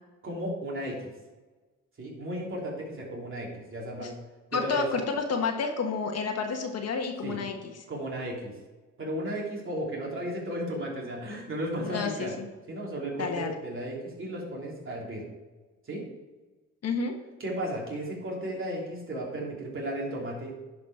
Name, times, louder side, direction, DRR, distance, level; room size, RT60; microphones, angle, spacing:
voice 1, 0.2-1.1 2.0-4.1 4.5-4.9 7.2-7.4 7.9-8.5 9.0-12.3 12.7-15.3 15.9-16.0 17.4-20.5, right 1 dB, 40° right, -3 dB, 3.3 m, -34 dB
voice 2, 4.5-7.7 11.8-12.4 13.2-13.5 16.8-17.1, left 5 dB, 55° left, 4 dB, 1.3 m, -30 dB
10.5 x 5.1 x 4.9 m, 1.2 s
cardioid pair, 90°, 30 cm